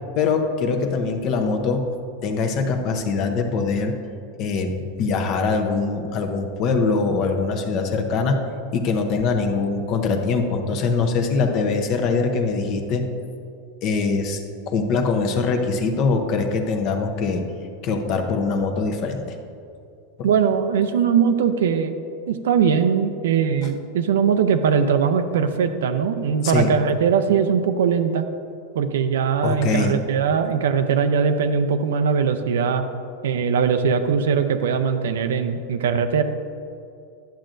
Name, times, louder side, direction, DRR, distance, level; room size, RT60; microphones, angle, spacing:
voice 1, 0.2-1.9 2.2-3.9 4.4-4.7 5.0-8.4 8.7-13.0 13.8-14.4 14.7-17.4 17.8-19.2 20.2-20.3 26.4-26.7 29.4-30.0, left 4 dB, 40° left, 5 dB, 0.8 m, -22 dB
voice 2, 20.2-22.0 22.3-28.2 28.7-32.8 33.2-36.2, right 6 dB, 90° right, 8 dB, 0.5 m, -20 dB
10.0 x 7.4 x 2.6 m, 2.5 s
supercardioid pair, 145°, 0 cm